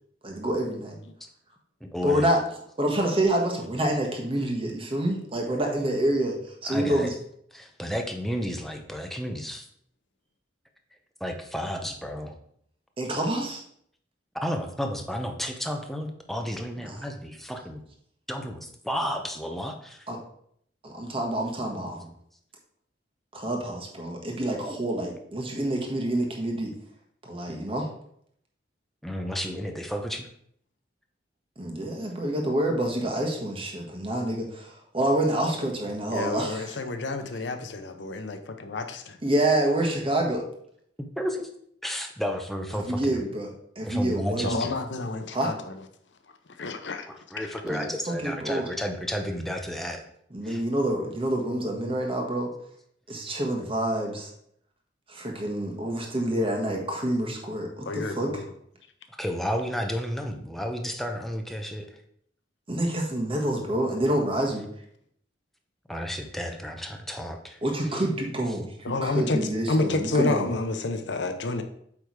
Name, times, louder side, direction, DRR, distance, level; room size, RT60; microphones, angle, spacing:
voice 1, 0.2-1.0 2.0-2.4 2.8-7.1 13.0-13.6 16.8-17.0 20.1-20.2 20.8-22.1 23.3-26.7 27.2-27.9 31.6-36.8 39.2-40.4 42.8-44.6 45.3-45.5 47.6-48.7 50.3-52.5 53.1-54.3 55.1-58.4 62.7-64.7 67.6-70.5, right 1 dB, 30° right, 1 dB, 1.4 m, -27 dB
voice 2, 1.8-2.3 6.6-7.1 7.5-9.7 11.2-12.3 14.4-17.8 18.3-20.1 29.0-30.3 41.0-41.5 41.8-43.2 43.8-44.7 47.1-50.0 50.4-50.6 59.2-61.9 65.9-67.6, equal, ahead, 3 dB, 0.7 m, -32 dB
voice 3, 36.1-39.2 44.4-45.5 46.6-47.1 57.9-58.4 68.8-69.4 69.7-71.6, left 3 dB, 75° left, 7 dB, 0.7 m, -29 dB
8.4 x 3.4 x 4.7 m, 0.68 s
head